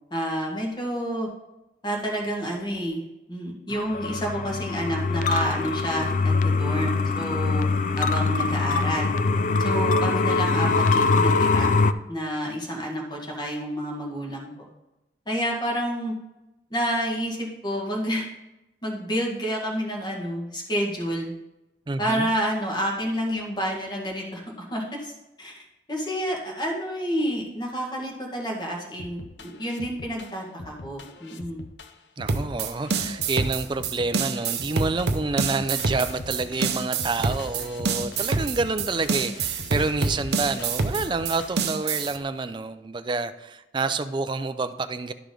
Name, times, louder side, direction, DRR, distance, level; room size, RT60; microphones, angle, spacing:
voice 1, 0.1-1.3 1.8-3.0 3.3-7.7 8.0-9.1 9.6-11.8 12.1-14.7 15.3-16.1 16.7-18.3 18.8-21.3 22.0-25.1 25.4-31.6, equal, 25° left, -1 dB, 1.7 m, -29 dB
sound 1, 3.7-11.9, left 3 dB, 45° left, 0.4 m, -23 dB
voice 2, 21.9-22.3 32.2-45.1, right 3 dB, 25° right, 10 dB, 0.4 m, -28 dB
sound 2, 29.0-42.2, left 3 dB, 85° left, 0.7 m, -42 dB
sound 3, 32.3-42.2, right 4 dB, 65° right, 0.7 m, -27 dB
11.5 x 5.0 x 3.8 m, 0.97 s
head